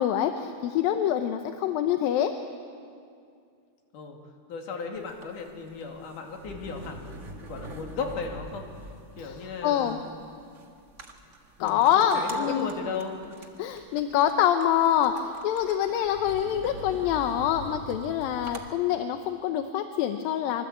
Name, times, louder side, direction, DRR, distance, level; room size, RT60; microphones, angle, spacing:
voice 1, 0.0-2.3 9.2-10.0 11.6-12.7 13.6-20.7, left 10 dB, 75° left, 7 dB, 2.4 m, -25 dB
voice 2, 4.5-8.7 9.2-10.1 11.6-13.2, left 4 dB, 55° left, 2 dB, 3.8 m, -36 dB
sound 1, 4.9-18.7, right 1 dB, 75° right, 0.6 m, -43 dB
25.0 x 24.0 x 8.5 m, 2.3 s
omnidirectional pair, 4.6 m